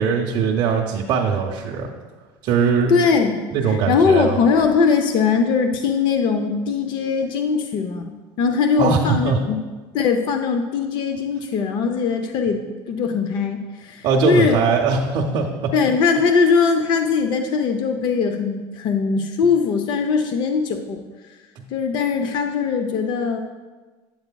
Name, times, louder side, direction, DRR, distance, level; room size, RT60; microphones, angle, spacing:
voice 1, 0.0-1.9 2.4-2.9 3.5-4.4 8.8-9.4 14.0-15.7, right 5 dB, 50° right, -2 dB, 0.6 m, -20 dB
voice 2, 2.9-8.1 8.4-9.6 9.9-14.6 15.7-21.0 21.7-23.4, left 5 dB, 50° left, 6 dB, 0.5 m, -20 dB
7.9 x 7.8 x 2.2 m, 1.3 s
cardioid pair, 150°, 10 cm